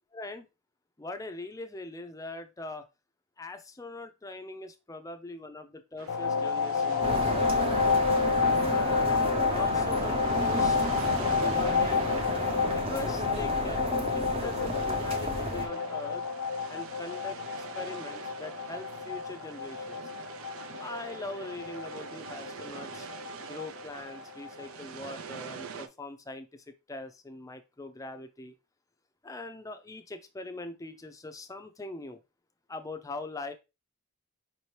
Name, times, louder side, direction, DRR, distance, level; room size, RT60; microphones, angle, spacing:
voice 1, 0.1-0.5 1.0-2.9 3.4-7.4 8.6-10.8 11.4-12.5 12.7-16.2 16.7-17.4 17.7-20.0 20.8-23.1 23.4-28.5 29.2-32.2 32.7-33.5, left 2 dB, 15° left, 8 dB, 0.5 m, -42 dB
sound 1, 6.0-25.9, right 6 dB, 70° right, 0.5 m, -45 dB
sound 2, 6.1-24.7, left 5 dB, 80° left, 0.3 m, -30 dB
sound 3, 7.0-15.7, right 2 dB, 25° right, 0.7 m, -33 dB
5.2 x 2.9 x 3.2 m, 0.26 s
head